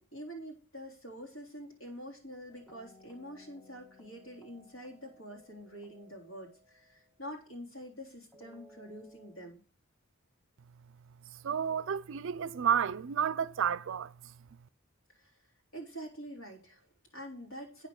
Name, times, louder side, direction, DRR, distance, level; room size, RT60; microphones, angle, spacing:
voice 1, 0.0-9.6 15.1-15.3 15.7-17.9, equal, 70° left, 3.5 m, -46 dB
sound 1, 2.5-7.6 8.3-9.5, equal, 5° left, 1.6 m, -60 dB
voice 2, 11.4-14.1, right 8 dB, 60° right, 0.4 m, -31 dB
8.8 x 6.5 x 6.4 m
head